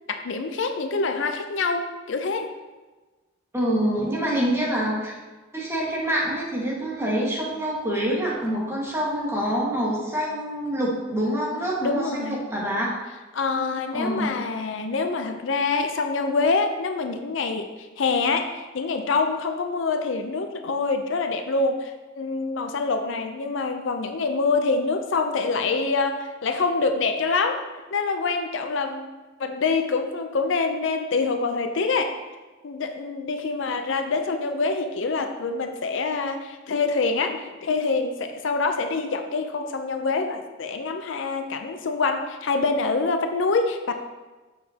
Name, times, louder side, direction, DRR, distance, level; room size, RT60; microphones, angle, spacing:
voice 1, 0.1-2.5 4.2-4.4 11.8-12.4 13.3-29.1 29.4-32.2 32.6-43.9, left 4 dB, 65° left, 6 dB, 0.5 m, -26 dB
voice 2, 3.5-5.1 5.5-13.0 13.9-14.3, right 1 dB, 15° right, -5 dB, 1.6 m, -26 dB
7.4 x 6.5 x 2.8 m, 1.2 s
head